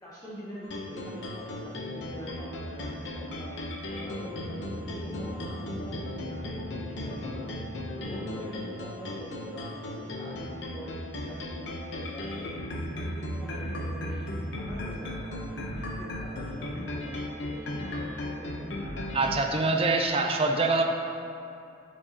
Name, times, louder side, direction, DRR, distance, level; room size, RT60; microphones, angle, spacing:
voice 1, 0.0-3.6 3.9-7.6 8.0-12.6 12.9-17.1 17.4-19.4, equal, 20° left, -9 dB, 0.8 m, -44 dB
sound 1, 0.6-19.5, left 1 dB, 75° left, 0.7 m, -36 dB
voice 2, 19.1-20.8, right 3 dB, 30° right, 3 dB, 0.5 m, -24 dB
9.7 x 4.7 x 2.8 m, 2.6 s
head